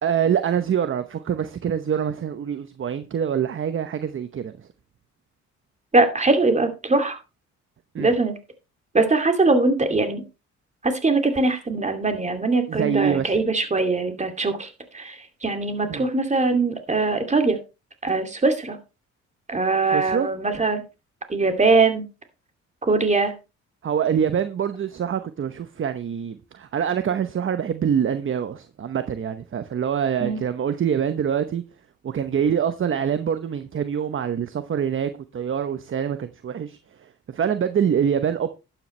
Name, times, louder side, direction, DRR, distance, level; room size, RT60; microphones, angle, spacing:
voice 1, 0.0-4.7 7.9-8.1 12.7-13.4 15.9-16.1 19.9-20.3 23.8-31.6 32.0-38.5, right 8 dB, 40° right, 0.9 m, -25 dB
voice 2, 5.9-7.2 8.0-8.3 8.9-10.2 10.8-14.7 14.9-17.6 18.0-18.8 19.5-20.8 21.3-22.0 22.9-23.3 30.2-30.4, right 3 dB, 25° right, 2.6 m, -21 dB
11.5 x 9.1 x 3.3 m
cardioid pair, 90°, 30 cm